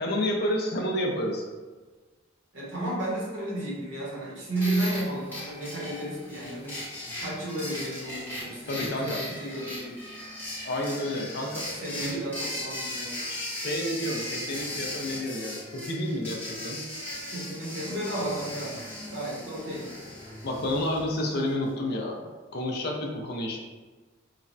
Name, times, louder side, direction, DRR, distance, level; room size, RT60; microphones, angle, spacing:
voice 1, 0.0-1.4 8.7-9.2 10.6-11.6 12.0-12.2 13.3-16.8 20.4-22.2 22.5-23.6, left 1 dB, 50° left, 0 dB, 0.4 m, -30 dB
voice 2, 2.5-6.8 7.2-10.0 11.0-11.3 11.7-13.2 17.3-18.8 19.1-19.9, right 1 dB, 60° right, -5 dB, 0.8 m, -33 dB
sound 1, 4.5-21.5, left 1 dB, 10° left, 0.7 m, -38 dB
3.1 x 2.0 x 2.5 m, 1.3 s
head